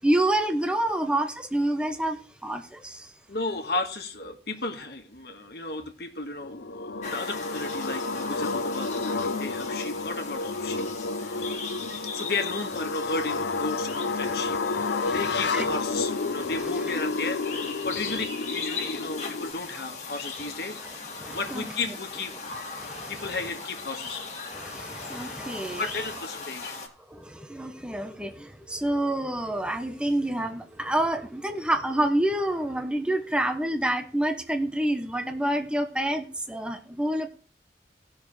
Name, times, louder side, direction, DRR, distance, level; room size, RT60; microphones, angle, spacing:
voice 1, 0.0-3.1 14.2-15.2 15.5-15.7 18.8-18.9 20.8-20.9 21.2-21.7 22.7-23.4 24.5-25.9 27.1-37.3, right 1 dB, 5° right, 0.8 m, -28 dB
voice 2, 3.3-10.9 11.2-11.7 12.1-14.6 15.1-20.8 21.2-22.5 23.1-24.2 25.8-26.8, left 3 dB, 65° left, 1.6 m, -34 dB
sound 1, 6.4-19.5, left 3 dB, 80° left, 0.6 m, -31 dB
sound 2, 7.0-26.9, left 4 dB, 40° left, 2.0 m, -39 dB
18.0 x 6.3 x 3.2 m
head